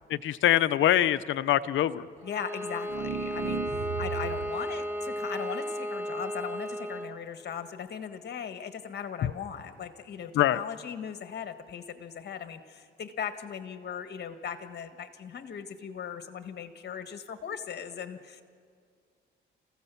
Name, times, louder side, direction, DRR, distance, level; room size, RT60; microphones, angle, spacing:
voice 1, 0.2-2.1 9.2-9.3 10.3-10.6, left 12 dB, 75° left, 14 dB, 0.7 m, -24 dB
voice 2, 2.2-18.4, left 7 dB, 55° left, 8 dB, 1.6 m, -39 dB
Bowed string instrument, 2.2-7.2, equal, 10° right, 2.2 m, -34 dB
sound 1, 2.9-4.7, right 9 dB, 55° right, 0.9 m, -35 dB
29.0 x 16.0 x 7.1 m, 2.2 s
cardioid pair, 90°, 20 cm